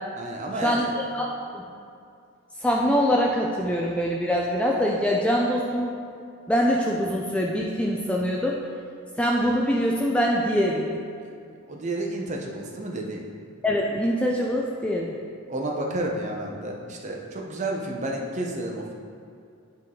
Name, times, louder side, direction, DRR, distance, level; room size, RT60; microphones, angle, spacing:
voice 1, 0.2-0.9 11.7-13.3 15.5-18.9, right 1 dB, 30° right, 0 dB, 0.7 m, -31 dB
voice 2, 2.6-5.9 6.5-8.6 9.2-11.0 13.6-15.2, equal, 5° left, -3 dB, 0.3 m, -24 dB
9.8 x 3.8 x 3.7 m, 2.4 s
head